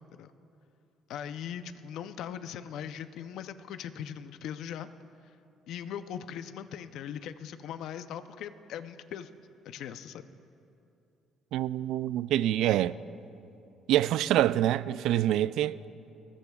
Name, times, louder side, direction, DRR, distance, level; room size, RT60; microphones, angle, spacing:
voice 1, 1.1-4.9 5.7-9.3 9.6-10.2, left 9 dB, 70° left, 0.6 m, -40 dB
voice 2, 11.5-13.0 13.9-15.9, right 12 dB, 75° right, 0.3 m, -26 dB
23.5 x 20.5 x 2.4 m
cardioid pair, 125°, 0 cm